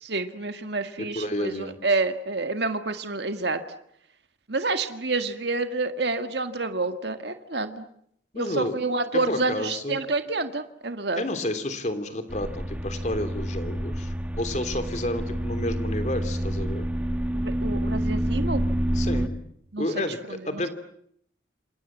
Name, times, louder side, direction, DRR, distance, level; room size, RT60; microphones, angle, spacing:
voice 1, 0.0-3.6 4.5-7.8 8.4-11.2 17.3-18.6 19.7-20.0 20.3-20.7, right 3 dB, 65° right, 8 dB, 1.9 m, -28 dB
voice 2, 1.0-1.8 8.3-8.7 9.1-10.0 11.1-16.9 18.9-19.4 19.8-20.7, left 1 dB, 40° left, 9 dB, 3.0 m, -30 dB
sound 1, 12.3-19.3, equal, 5° right, 1.6 m, -28 dB
28.5 x 27.5 x 7.4 m, 0.70 s
head